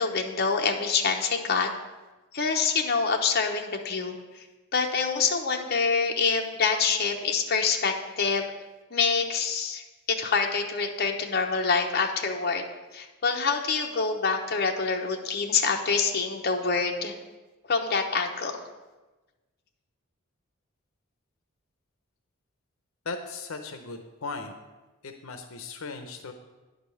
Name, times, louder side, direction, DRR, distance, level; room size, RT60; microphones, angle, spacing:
voice 1, 0.0-1.7 2.3-4.1 4.7-8.5 8.9-9.8 10.1-12.6 12.9-17.1 17.7-18.5, left 5 dB, 45° left, 2 dB, 0.9 m, -26 dB
voice 2, 23.1-24.5 25.0-26.3, left 3 dB, 75° left, 6 dB, 0.7 m, -37 dB
10.0 x 5.2 x 6.4 m, 1.2 s
head